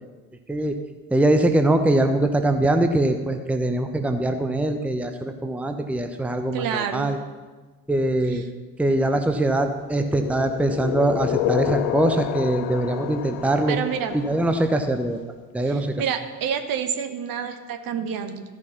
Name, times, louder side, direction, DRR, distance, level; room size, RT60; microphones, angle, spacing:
voice 1, 1.1-7.2 7.9-8.4 8.8-13.8 14.1-15.2 15.5-15.9, right 1 dB, 5° right, 7 dB, 0.8 m, -22 dB
voice 2, 6.5-7.1 13.7-14.2 15.6-18.4, right 7 dB, 50° right, 7 dB, 1.2 m, -28 dB
sound 1, 9.9-14.9, left 13 dB, 60° left, 0.6 m, -29 dB
13.5 x 6.1 x 5.8 m, 1.3 s
figure-of-eight pair, 55°, 45 cm